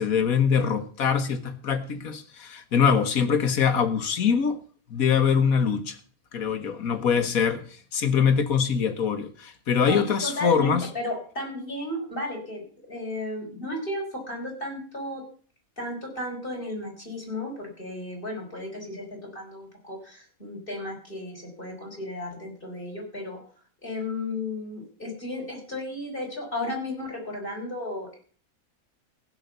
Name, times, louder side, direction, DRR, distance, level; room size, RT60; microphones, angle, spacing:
voice 1, 0.0-4.6 4.9-6.0 6.3-10.9, left 6 dB, 75° left, 1.7 m, -23 dB
voice 2, 9.9-15.2 15.8-23.4 23.8-28.2, left 1 dB, 35° left, 5.0 m, -34 dB
15.5 x 6.3 x 8.0 m
omnidirectional pair, 1.5 m